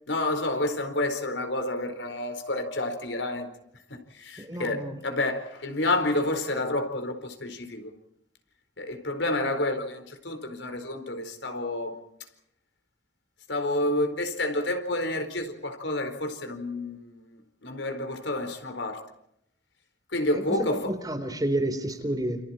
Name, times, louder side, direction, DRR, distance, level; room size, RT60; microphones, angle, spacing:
voice 1, 0.1-3.5 3.9-7.9 8.8-12.0 13.5-19.0 20.1-20.9, left 2 dB, 85° left, 4.5 m, -29 dB
voice 2, 4.4-5.0 20.3-20.4 20.7-22.4, right 1 dB, 20° right, 3.8 m, -30 dB
29.5 x 29.0 x 4.4 m
head